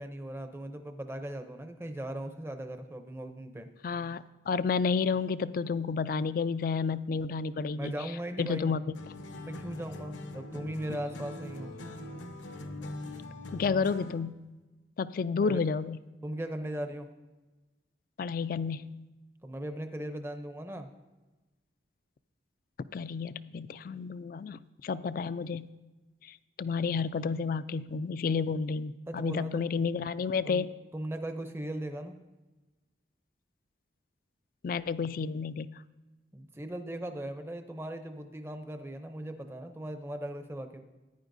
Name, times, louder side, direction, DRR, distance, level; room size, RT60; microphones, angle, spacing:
voice 1, 0.0-3.7 7.7-8.7 9.4-11.7 15.4-15.6 16.2-17.1 19.4-20.9 29.1-29.8 30.4-30.7 30.9-32.2 36.3-40.8, right 1 dB, 15° right, 7 dB, 0.6 m, -38 dB
voice 2, 3.8-7.9 8.4-8.9 13.5-14.4 15.0-16.0 18.2-19.0 22.9-25.7 26.2-30.7 34.6-35.8, left 5 dB, 50° left, 16 dB, 0.3 m, -31 dB
sound 1, 8.9-14.3, left 2 dB, 85° left, 0.9 m, -42 dB
14.5 x 9.9 x 2.6 m, 1.1 s
head